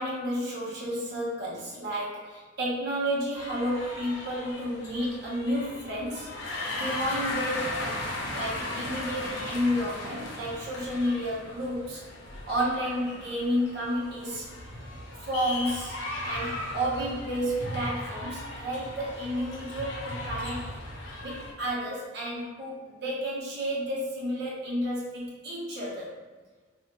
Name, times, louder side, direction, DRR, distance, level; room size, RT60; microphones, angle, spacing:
voice 1, 0.0-6.3 6.7-8.0 8.3-12.0 12.5-14.5 15.2-16.0 16.2-20.7 21.2-26.1, equal, 60° right, -6 dB, 0.8 m, -31 dB
sound 1, 3.3-21.5, left 2 dB, 75° left, 0.6 m, -37 dB
3.1 x 2.1 x 2.8 m, 1.4 s
head